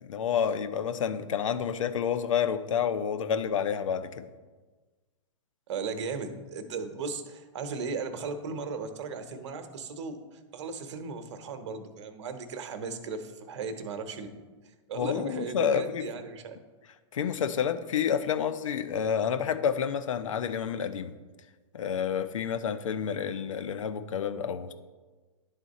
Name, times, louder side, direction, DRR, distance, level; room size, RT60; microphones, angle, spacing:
voice 1, 0.0-4.2 14.9-16.1 17.1-21.1 21.7-24.7, left 7 dB, 85° left, 11 dB, 0.5 m, -29 dB
voice 2, 5.7-14.3 14.9-16.6, right 4 dB, 65° right, 8 dB, 0.9 m, -36 dB
10.5 x 3.7 x 4.1 m, 1.3 s
hypercardioid pair, 125°, 16 cm